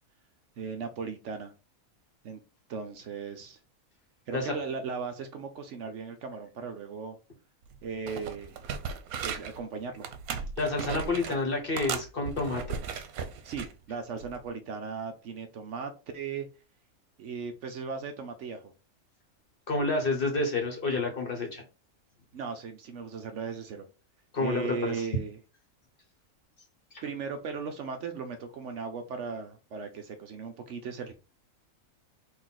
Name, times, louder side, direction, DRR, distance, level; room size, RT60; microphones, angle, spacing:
voice 1, 0.6-1.5 2.2-2.4 2.7-3.6 4.3-7.2 7.8-8.6 9.2-10.1 13.4-16.5 17.2-18.7 22.3-23.9 24.4-25.4 27.0-31.2, right 5 dB, 65° right, 0.9 m, -37 dB
sound 1, 7.6-7.8 8.1-9.6 10.0-11.4 11.8-13.7 14.2-14.4, right 6 dB, 90° right, 1.1 m, -36 dB
voice 2, 10.6-12.8 19.7-21.6 24.3-25.1 26.9-27.0, left 3 dB, 45° left, 1.1 m, -29 dB
4.1 x 2.6 x 3.8 m
omnidirectional pair, 1.5 m